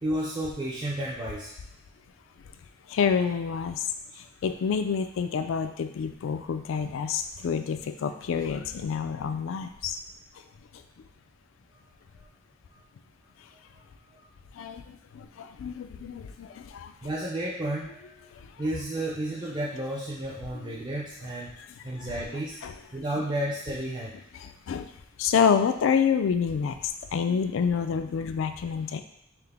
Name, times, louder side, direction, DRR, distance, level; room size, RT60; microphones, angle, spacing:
voice 1, 0.0-1.5 17.0-18.2 18.6-21.5 21.8-22.6 22.9-24.2, right 1 dB, 20° right, -5 dB, 0.4 m, -32 dB
voice 2, 2.9-3.9 4.1-10.0 10.7-10.8 14.5-16.9 18.3-18.5 20.6-20.7 22.0-22.1 22.6-22.7 24.3-24.9 25.2-29.0, left 6 dB, 70° left, 9 dB, 0.3 m, -28 dB
5.6 x 2.1 x 3.4 m, 0.76 s
head